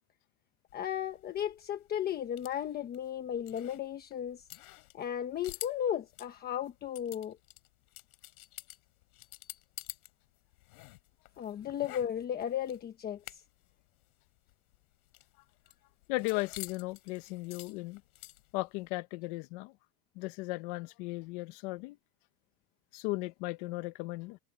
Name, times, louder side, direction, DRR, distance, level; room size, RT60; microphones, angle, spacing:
sound 1, 0.7-10.1 10.4-13.7 14.0-14.1 14.4-18.7, left 20 dB, 70° left, 7.1 m, -49 dB
voice 1, 0.7-4.4 4.9-7.4 11.4-13.4, left 10 dB, 20° left, 1.2 m, -35 dB
voice 2, 16.1-18.0 18.5-19.7 20.1-22.0 22.9-24.4, left 22 dB, 45° left, 1.1 m, -36 dB
supercardioid pair, 170°, 44 cm